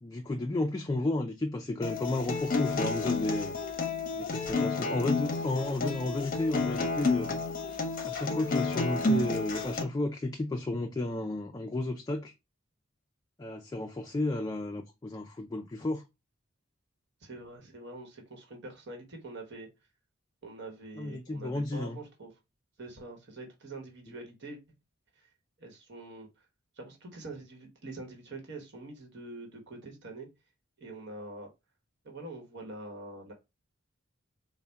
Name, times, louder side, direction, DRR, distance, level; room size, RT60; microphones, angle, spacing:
voice 1, 0.0-3.6 4.1-7.3 8.0-12.3 13.4-16.0 21.0-22.0, left 2 dB, 20° left, 0.3 m, -32 dB
Acoustic guitar, 1.8-9.8, left 3 dB, 45° left, 0.7 m, -30 dB
voice 2, 17.2-19.7 20.4-22.3 22.8-24.6 25.2-25.3 25.6-26.3 26.8-30.3 30.8-31.5 32.0-33.3, right 2 dB, 60° right, 1.1 m, -45 dB
4.0 x 2.1 x 3.3 m
head